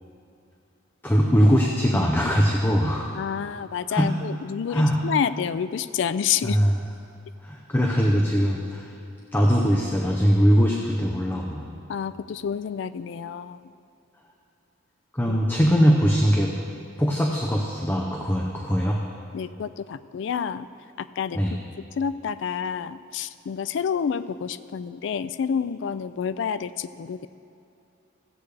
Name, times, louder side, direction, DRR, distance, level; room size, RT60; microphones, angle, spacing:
voice 1, 1.0-3.1 3.9-4.1 4.7-5.0 6.4-6.8 7.4-8.9 9.3-11.7 15.1-16.5 17.0-19.0 21.3-21.5, equal, 10° left, -1 dB, 0.6 m, -21 dB
voice 2, 3.2-6.6 11.9-13.6 15.2-15.4 19.3-20.7 21.0-21.4 22.0-27.3, left 7 dB, 65° left, 14 dB, 0.3 m, -29 dB
15.5 x 8.1 x 3.3 m, 2.7 s
head